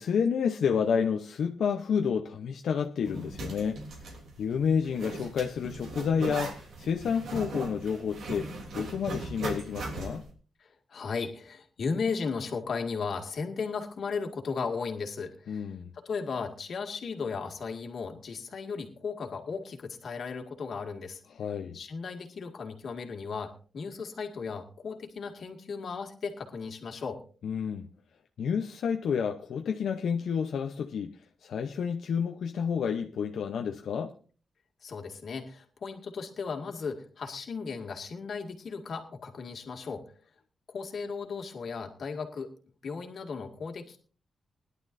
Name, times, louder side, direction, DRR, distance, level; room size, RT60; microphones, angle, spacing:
voice 1, 0.0-8.5 8.7-10.2 15.5-15.9 21.3-21.8 27.4-27.9 28.4-31.1 31.4-34.1, left 7 dB, 85° left, 0.8 m, -30 dB
Zipper (clothing), 3.0-10.3, right 2 dB, 80° right, 3.2 m, -39 dB
voice 2, 10.6-21.2 21.7-27.2 34.8-40.0 40.7-42.5 42.8-44.0, left 5 dB, 60° left, 2.1 m, -36 dB
20.5 x 11.5 x 2.6 m
wide cardioid pair, 140°, 0 cm